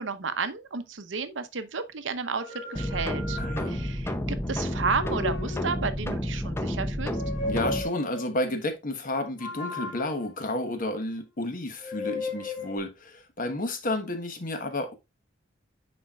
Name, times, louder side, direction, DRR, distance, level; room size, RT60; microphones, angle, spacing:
voice 1, 0.0-3.4 3.7-4.1 4.5-7.1, right 5 dB, 70° right, 0.8 m, -32 dB
sound 1, 2.3-4.1 4.7-6.0 7.0-8.3 9.4-11.2 11.8-12.8, left 2 dB, 85° left, 2.2 m, -36 dB
sound 2, 2.7-7.8, left 1 dB, 15° left, 0.6 m, -30 dB
voice 2, 3.4-3.8 7.5-14.9, left 1 dB, 45° left, 1.2 m, -31 dB
9.6 x 4.2 x 2.4 m
head